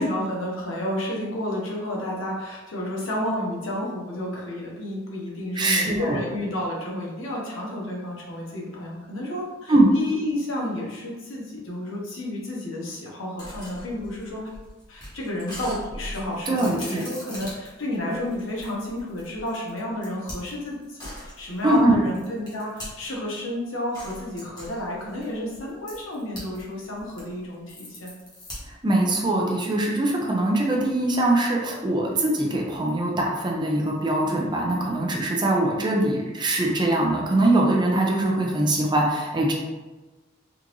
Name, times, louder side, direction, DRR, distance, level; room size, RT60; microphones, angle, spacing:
voice 1, 0.0-14.4 14.9-28.1, left 1 dB, 85° left, -3 dB, 0.9 m, -31 dB
voice 2, 5.6-6.2 9.7-9.9 16.5-17.0 21.6-22.0 28.8-39.5, right 1 dB, 25° right, -1 dB, 0.5 m, -22 dB
sound 1, 13.4-23.3 23.9-26.6 26.9-28.9, left 1 dB, 20° left, 1.2 m, -41 dB
3.7 x 2.5 x 3.0 m, 1.2 s
head